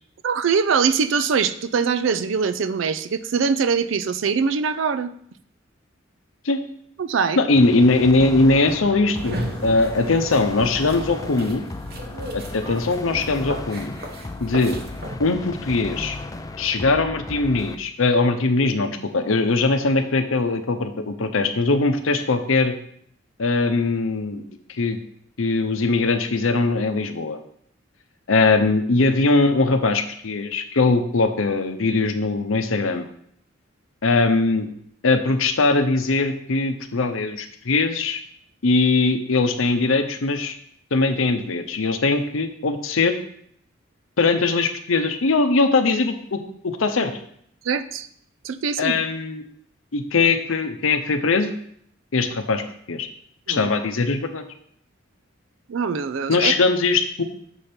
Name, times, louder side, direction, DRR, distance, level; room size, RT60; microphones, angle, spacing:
voice 1, 0.2-5.1 7.0-7.4 47.6-48.1 48.4-49.0 53.5-53.7 55.7-56.5, right 6 dB, 70° right, 13 dB, 0.4 m, -22 dB
voice 2, 7.4-11.7 12.3-13.9 14.4-14.8 15.2-16.2 16.6-22.7 23.4-24.4 24.8-25.0 25.4-27.4 28.3-33.0 34.0-34.7 35.0-38.2 38.6-40.5 40.9-43.2 44.2-47.1 48.8-49.4 49.9-51.5 52.1-52.6 52.9-53.1 53.5-54.4 56.3-57.2, left 3 dB, 85° left, 8 dB, 0.7 m, -21 dB
sound 1, 7.6-17.8, left 2 dB, 15° left, 0.3 m, -35 dB
sound 2, 9.1-15.2, right 1 dB, 50° right, 1.0 m, -35 dB
7.1 x 5.1 x 4.4 m, 0.67 s
head